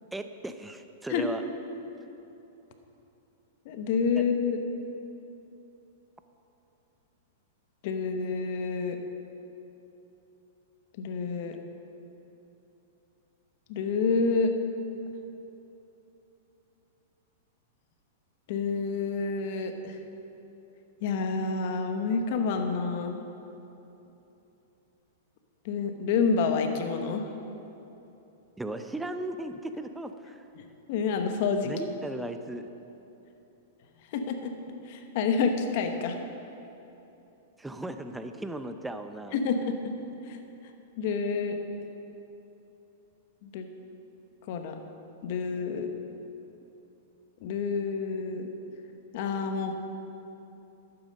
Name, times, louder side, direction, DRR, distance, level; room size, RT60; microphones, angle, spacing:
voice 1, 0.1-1.4 4.2-4.3 28.6-30.4 31.6-32.7 37.6-39.4, right 1 dB, 5° right, 8 dB, 0.6 m, -36 dB
voice 2, 3.6-4.6 7.8-9.0 11.0-11.6 13.7-14.5 18.5-19.9 21.0-23.2 25.6-27.2 30.6-31.7 34.1-34.5 34.9-36.2 39.3-39.9 40.3-40.4 41.0-41.6 43.4-43.7 44.5-44.8 45.2-45.9 47.4-48.5 49.1-49.7, left 5 dB, 55° left, 6 dB, 1.2 m, -28 dB
11.5 x 8.9 x 5.3 m, 3.0 s
hypercardioid pair, 115°, 0 cm